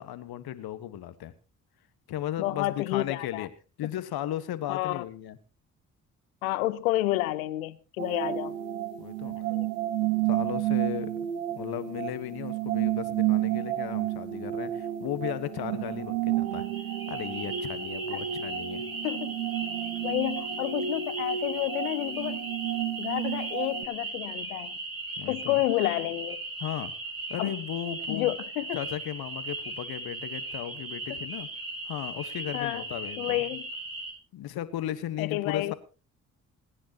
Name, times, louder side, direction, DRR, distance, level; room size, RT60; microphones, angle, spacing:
voice 1, 0.0-1.3 2.1-3.5 3.8-5.4 9.0-9.4 10.3-11.1 11.5-16.7 17.1-18.8 25.2-25.6 26.6-26.9 27.3-28.3 28.7-31.5 31.9-33.4 34.3-35.7, left 12 dB, 65° left, 1.4 m, -35 dB
voice 2, 2.4-3.5 4.7-5.0 6.4-8.6 9.4-9.7 18.1-18.2 19.0-19.4 20.0-22.5 23.0-24.8 25.3-26.4 27.4-27.5 28.1-28.8 31.1-31.2 32.5-32.8 33.2-33.7 35.2-35.7, left 17 dB, 85° left, 0.8 m, -30 dB
sound 1, 8.0-23.9, right 12 dB, 85° right, 1.1 m, -31 dB
sound 2, 16.5-34.1, right 3 dB, 55° right, 4.2 m, -38 dB
28.5 x 10.0 x 2.9 m
hypercardioid pair, 40°, 40 cm